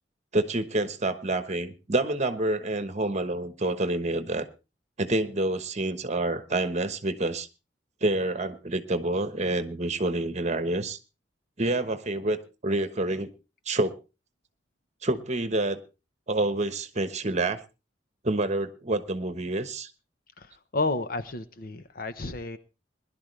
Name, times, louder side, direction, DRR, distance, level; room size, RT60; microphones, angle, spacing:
voice 1, 0.3-4.4 5.0-7.5 8.0-11.0 11.6-12.4 12.6-13.3 13.7-14.0 15.0-15.8 16.3-17.6 18.2-19.9, right 2 dB, 40° right, 1.2 m, -27 dB
voice 2, 20.7-22.6, left 3 dB, 55° left, 1.0 m, -31 dB
20.5 x 11.5 x 3.3 m
head